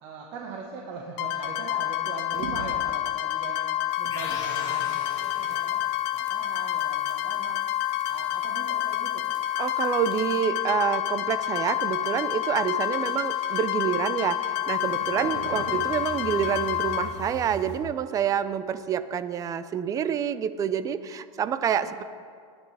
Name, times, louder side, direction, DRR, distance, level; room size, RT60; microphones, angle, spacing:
voice 1, 0.0-3.7 4.0-5.8 6.1-9.4 21.7-22.0, right 4 dB, 45° right, -1 dB, 1.5 m, -41 dB
sound 1, 1.2-17.1, left 13 dB, 45° left, 1.2 m, -28 dB
sound 2, 2.3-3.0 3.9-10.6 10.8-14.0 14.5-17.8, right 3 dB, 60° right, 1.6 m, -44 dB
sound 3, 4.1-6.0, left 3 dB, 25° left, 2.0 m, -39 dB
voice 2, 9.6-22.0, right 8 dB, 20° right, 13 dB, 0.5 m, -27 dB
20.0 x 9.7 x 3.4 m, 2.2 s
supercardioid pair, 140°, 16 cm